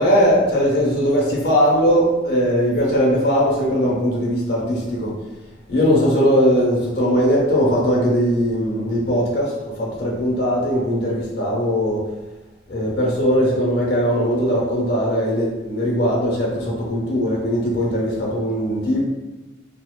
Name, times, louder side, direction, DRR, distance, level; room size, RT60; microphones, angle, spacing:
voice 1, 0.0-5.1 5.7-12.0 12.7-19.0, equal, 60° left, -4 dB, 0.7 m, -19 dB
2.7 x 2.1 x 2.2 m, 1.1 s
head